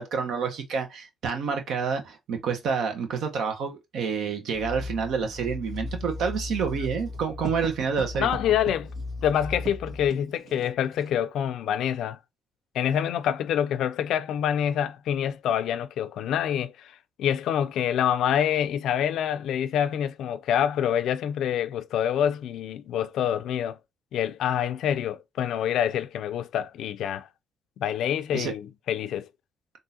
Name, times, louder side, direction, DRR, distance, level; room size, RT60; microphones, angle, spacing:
voice 1, 0.0-8.3 28.3-28.5, right 6 dB, 75° right, 1.0 m, -28 dB
sound 1, 4.5-10.1, left 3 dB, 15° left, 0.7 m, -37 dB
Writing, 5.2-11.2, right 6 dB, 60° right, 1.7 m, -42 dB
voice 2, 8.2-8.9 9.2-12.2 12.7-16.9 17.2-23.8 24.1-27.3 27.8-29.3, left 9 dB, 80° left, 0.4 m, -26 dB
3.7 x 2.6 x 2.7 m
cardioid pair, 90°, 0 cm